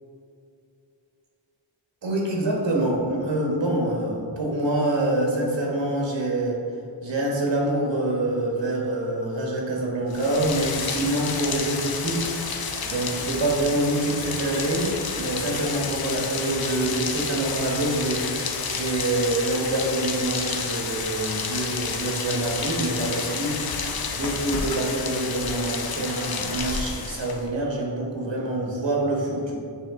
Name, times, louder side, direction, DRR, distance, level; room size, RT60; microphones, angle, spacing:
voice 1, 2.0-6.6 7.0-29.6, right 1 dB, 65° right, -2 dB, 1.5 m, -26 dB
Rain, 10.1-27.5, left 5 dB, 50° left, 0.6 m, -30 dB
8.1 x 3.2 x 3.6 m, 2.5 s
wide cardioid pair, 85°, 47 cm